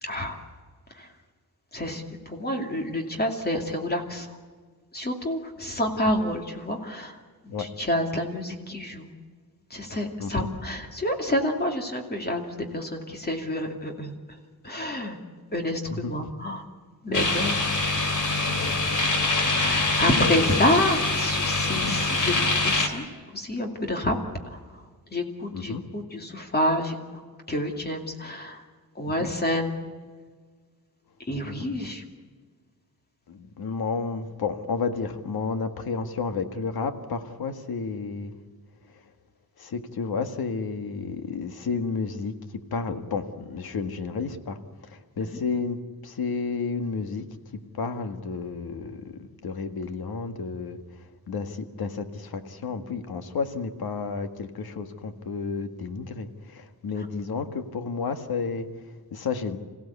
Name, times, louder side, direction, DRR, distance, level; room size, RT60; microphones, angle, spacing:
voice 1, 0.0-0.5 0.9-1.1 1.7-4.4 4.9-7.2 7.4-9.1 9.7-14.1 14.6-15.2 15.5-16.6 17.0-17.6 19.6-22.3 22.6-23.0 23.3-24.2 24.5-24.6 25.1-27.2 27.5-28.6 28.9-29.8 31.2-32.0 45.2-45.4 57.0-57.1, left 1 dB, 25° left, 3 dB, 2.6 m, -28 dB
Fridge Freezer, 17.1-22.9, left 2 dB, 50° left, 3.3 m, -24 dB
voice 2, 20.0-20.6 21.7-22.0 25.5-25.8 29.0-29.3 31.4-31.9 33.3-38.4 38.9-39.0 39.6-59.6, left 4 dB, 75° left, 8 dB, 1.9 m, -32 dB
27.0 x 16.5 x 8.4 m, 1.5 s
wide cardioid pair, 155°, 37 cm